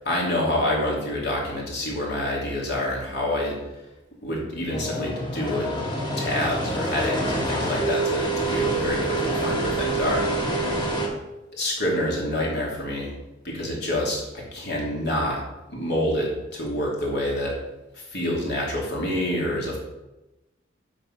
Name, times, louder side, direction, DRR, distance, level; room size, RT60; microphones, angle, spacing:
voice 1, 0.0-3.6 4.2-5.7 6.2-10.6 11.5-13.1 13.4-14.2 14.5-15.4 15.7-17.5 17.9-19.8, left 1 dB, 55° left, -3 dB, 3.1 m, -27 dB
sound 1, 4.7-11.1, right 1 dB, 25° left, 1.8 m, -26 dB
8.2 x 5.9 x 6.0 m, 0.99 s
head